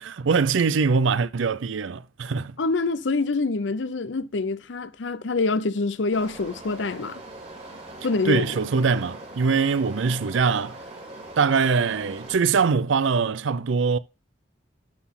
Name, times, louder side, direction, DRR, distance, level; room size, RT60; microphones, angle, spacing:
voice 1, 0.0-2.5 8.3-10.8 11.4-14.0, right 5 dB, 70° right, 0.5 m, -22 dB
voice 2, 2.6-7.2 8.0-8.6, left 3 dB, 65° left, 0.6 m, -26 dB
sound 1, 6.1-12.3, right 1 dB, 35° right, 2.1 m, -41 dB
11.5 x 4.1 x 3.6 m
head